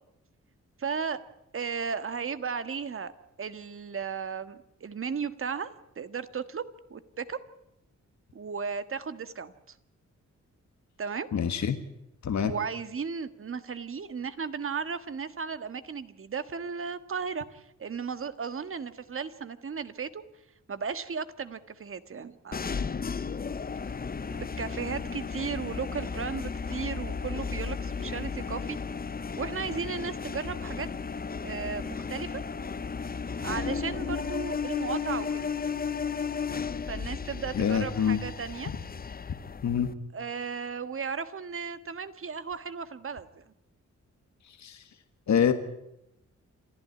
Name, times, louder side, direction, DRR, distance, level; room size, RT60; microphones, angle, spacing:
voice 1, 0.8-1.2 1.5-3.1 3.4-5.7 5.9-6.6 6.9-7.4 8.3-9.5 11.0-11.3 12.4-20.2 20.7-22.9 24.3-28.8 29.4-30.9 31.4-32.4 33.4-35.5 36.9-38.7 40.1-43.4, right 6 dB, 45° right, 12 dB, 1.6 m, -35 dB
voice 2, 11.3-11.8 12.2-12.5 37.5-38.2 39.6-39.9 44.6-44.8 45.3-45.5, left 8 dB, 70° left, 9 dB, 1.6 m, -25 dB
sound 1, 22.5-39.9, left 5 dB, 30° left, 0.8 m, -34 dB
27.5 x 14.5 x 9.5 m, 0.84 s
wide cardioid pair, 120°, 29 cm